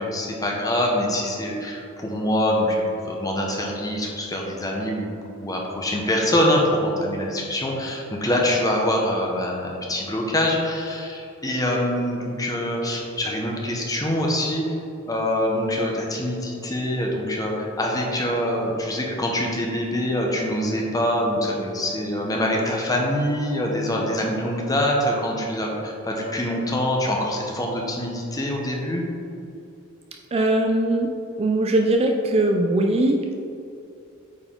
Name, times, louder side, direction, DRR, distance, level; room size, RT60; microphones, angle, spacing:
voice 1, 0.0-2.8 3.0-5.1 5.4-14.6 15.1-29.0, left 1 dB, 15° left, -1 dB, 1.0 m, -24 dB
voice 2, 30.3-31.1 31.4-33.4, right 1 dB, 30° right, 2 dB, 0.4 m, -20 dB
8.6 x 4.5 x 3.8 m, 2.7 s
head